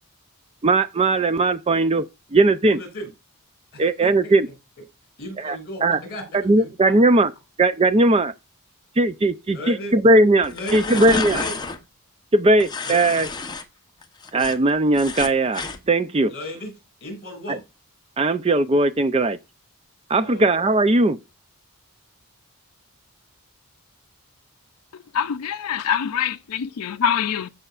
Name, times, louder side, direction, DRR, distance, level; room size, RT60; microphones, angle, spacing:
voice 1, 0.6-2.1 2.3-2.8 3.8-4.5 5.4-6.0 6.3-7.3 7.6-8.3 9.0-11.4 12.3-13.3 14.3-16.3 18.2-19.4 20.1-21.2, right 2 dB, 25° right, 0.5 m, -18 dB
voice 2, 2.7-3.1 3.7-4.3 5.2-7.2 9.5-10.0 10.5-11.5 12.8-13.0 16.3-16.7 17.0-17.6 20.2-20.5, left 1 dB, 45° left, 5.7 m, -35 dB
sound 1, 10.4-11.8 12.6-13.6 14.0-15.8, left 4 dB, 20° left, 1.0 m, -30 dB
voice 3, 25.1-27.5, left 8 dB, 85° left, 0.5 m, -24 dB
14.5 x 5.6 x 2.4 m
head